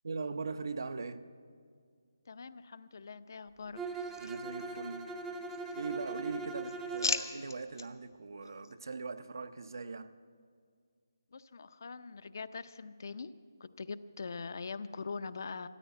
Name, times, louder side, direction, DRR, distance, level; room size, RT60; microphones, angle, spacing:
voice 1, 0.0-1.3 4.2-5.2 5.8-10.1, right 4 dB, 65° right, 0.7 m, -40 dB
voice 2, 2.3-3.8 11.3-13.3 13.6-15.7, left 4 dB, 55° left, 0.5 m, -43 dB
Bowed string instrument, 3.8-7.3, right 3 dB, 5° right, 0.6 m, -40 dB
sound 1, 4.0-5.1 5.4-6.1 6.4-7.9 8.4-8.7, left 4 dB, 70° left, 0.9 m, -39 dB
14.0 x 9.3 x 9.2 m
figure-of-eight pair, 165°, 2 cm